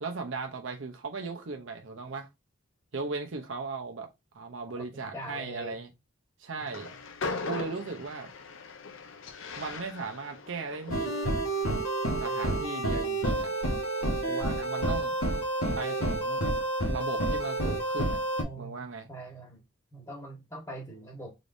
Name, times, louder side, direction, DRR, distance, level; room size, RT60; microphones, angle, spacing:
voice 1, 0.0-2.3 2.9-4.1 4.3-5.9 6.4-6.9 7.4-8.3 9.6-11.1 12.2-13.5 14.2-15.1 15.7-16.4 16.9-18.2 18.6-19.1, right 4 dB, 60° right, 0.7 m, -37 dB
voice 2, 5.1-5.8 6.6-6.7 18.4-19.6 19.9-21.3, right 1 dB, 15° left, 1.4 m, -43 dB
Train, 6.6-11.9, left 3 dB, 65° left, 0.6 m, -40 dB
sound 1, 10.9-18.4, right 1 dB, 90° left, 1.1 m, -29 dB
3.9 x 3.4 x 2.6 m
head